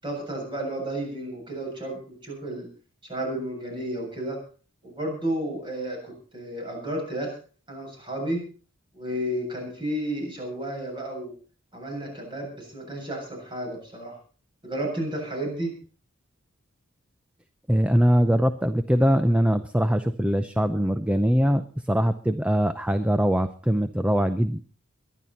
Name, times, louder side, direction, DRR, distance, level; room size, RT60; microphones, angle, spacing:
voice 1, 0.0-2.7 3.0-4.4 4.8-7.4 7.7-8.4 8.9-11.3 11.7-14.2 14.6-15.7, right 1 dB, 20° right, 1 dB, 7.6 m, -32 dB
voice 2, 17.7-24.6, equal, 5° right, 10 dB, 0.6 m, -22 dB
22.5 x 11.0 x 4.2 m, 0.39 s
head